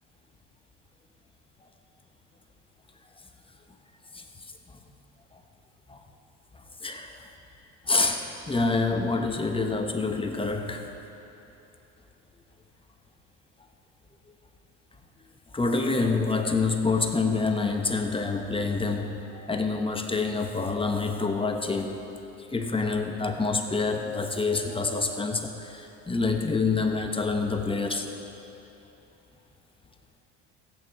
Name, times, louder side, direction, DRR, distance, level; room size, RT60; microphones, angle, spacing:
voice 1, 6.8-7.2 7.9-10.8 15.5-22.0 22.5-28.1, left 3 dB, 15° left, 4 dB, 1.0 m, -27 dB
15.0 x 9.3 x 4.7 m, 3.0 s
supercardioid pair, 90°, 38 cm